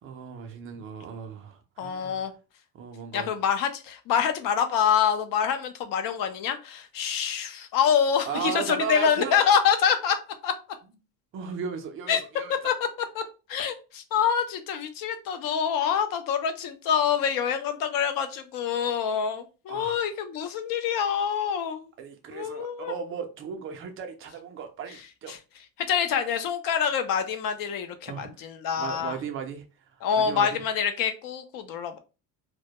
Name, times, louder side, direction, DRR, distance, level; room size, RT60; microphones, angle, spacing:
voice 1, 0.0-2.3 2.7-3.3 8.2-9.6 11.3-12.7 19.7-20.0 22.0-25.3 28.1-28.4 28.7-30.6, right 7 dB, 30° right, 0.4 m, -36 dB
voice 2, 1.8-2.3 3.1-10.2 10.4-10.5 12.1-12.2 12.6-12.7 13.2-13.3 13.5-21.9 22.3-22.9 25.3-25.4 25.9-29.1 30.0-32.0, left 7 dB, 50° left, 0.5 m, -26 dB
2.1 x 2.1 x 2.8 m
cardioid pair, 145°, 43 cm